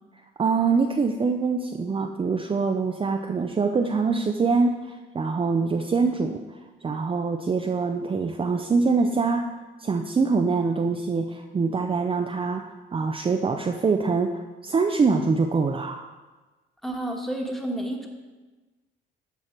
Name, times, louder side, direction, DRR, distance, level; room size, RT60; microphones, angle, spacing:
voice 1, 0.4-6.4 6.8-9.5 9.8-16.1, right 4 dB, 25° right, 4 dB, 0.5 m, -24 dB
voice 2, 16.8-18.1, right 1 dB, ahead, 2 dB, 1.4 m, -30 dB
13.0 x 4.6 x 4.5 m, 1.2 s
cardioid pair, 90°, 20 cm